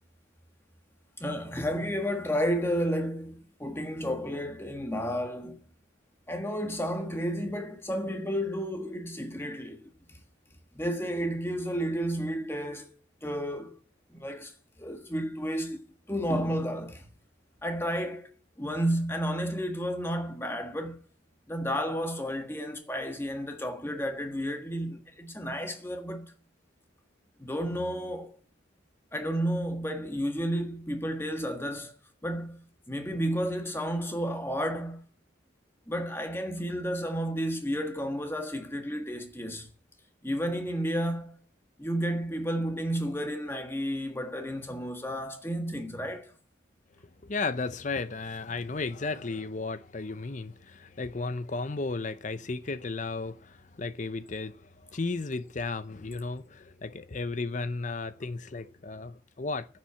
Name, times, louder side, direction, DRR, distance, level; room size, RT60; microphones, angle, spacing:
voice 1, 1.2-5.6 6.3-9.8 10.7-12.9 13.2-13.8 14.1-14.5 14.8-15.8 16.1-17.0 17.6-18.3 18.6-21.0 21.5-26.3 27.4-28.4 29.1-31.9 32.2-35.0 35.9-39.7 40.2-41.4 41.8-46.3, equal, 10° left, 1.5 m, -32 dB
voice 2, 47.2-59.7, left 3 dB, 40° left, 0.6 m, -34 dB
10.0 x 7.5 x 8.4 m
head